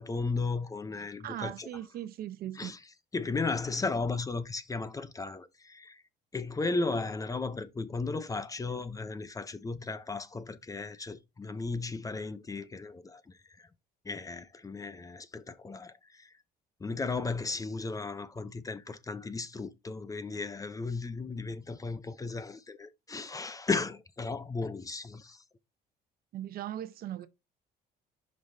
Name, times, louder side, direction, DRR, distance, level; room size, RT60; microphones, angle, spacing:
voice 1, 0.0-1.7 2.5-2.8 3.1-6.0 6.3-13.7 14.0-16.3 16.8-25.4, left 3 dB, 20° left, 0.7 m, -35 dB
voice 2, 1.0-2.7 26.3-27.3, right 12 dB, 60° right, 0.8 m, -39 dB
11.5 x 5.4 x 2.7 m
cardioid pair, 110°, 17 cm